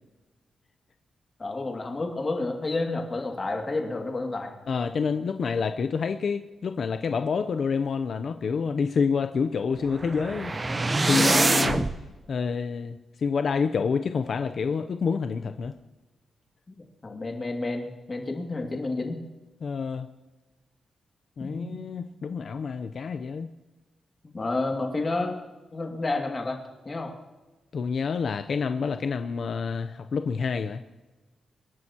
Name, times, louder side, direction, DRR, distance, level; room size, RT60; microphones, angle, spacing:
voice 1, 1.4-4.5 16.7-19.2 21.4-21.7 24.3-25.3 25.7-26.6 26.8-27.1, left 2 dB, 30° left, 1 dB, 2.3 m, -30 dB
voice 2, 4.7-10.5 11.0-11.8 12.3-15.7 19.6-20.1 21.4-23.5 27.7-30.8, left 5 dB, 55° left, 7 dB, 0.7 m, -28 dB
sound 1, 9.8-12.0, right 2 dB, 25° right, 0.9 m, -25 dB
26.0 x 11.0 x 2.9 m, 1.2 s
cardioid pair, 110°, 0 cm